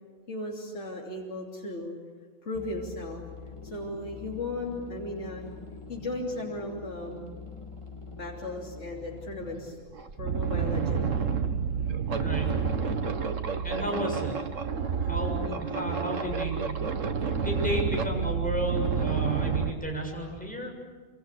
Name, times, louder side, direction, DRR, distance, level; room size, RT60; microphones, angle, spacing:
voice 1, 0.3-1.9 2.4-3.2 3.6-5.5 5.9-7.3 8.2-9.8 10.2-11.1 14.7-15.1 15.4-15.6, left 2 dB, 65° left, -1 dB, 3.5 m, -36 dB
sound 1, 2.5-9.7, left 4 dB, 25° left, 2.5 m, -44 dB
sound 2, 9.3-9.4 9.8-19.7, right 6 dB, 80° right, 1.9 m, -29 dB
voice 2, 12.2-12.5 13.6-14.3 15.0-16.8 17.4-20.7, equal, 5° left, 0 dB, 7.1 m, -33 dB
27.0 x 26.0 x 8.3 m, 1.5 s
omnidirectional pair, 1.3 m